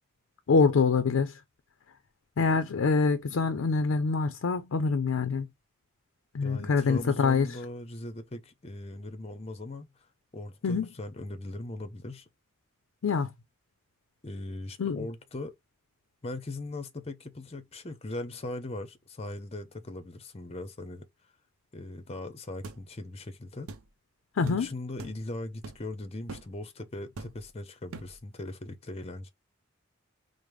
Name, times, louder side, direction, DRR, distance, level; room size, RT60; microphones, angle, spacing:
voice 1, 0.5-1.3 2.4-5.5 6.3-7.5 10.6-10.9 13.0-13.3 14.8-15.0 24.4-24.7, left 4 dB, 75° left, 0.4 m, -25 dB
voice 2, 6.4-9.9 10.3-12.3 14.2-15.5 16.2-21.1 21.7-23.7 24.4-29.3, left 2 dB, 30° left, 0.6 m, -39 dB
sound 1, 22.6-22.8 23.7-23.9 24.5-24.6 25.0-25.2 25.6-25.9 26.3-26.5 27.2-27.5 27.9-28.2, right 3 dB, 90° right, 0.6 m, -42 dB
5.0 x 2.0 x 3.1 m
head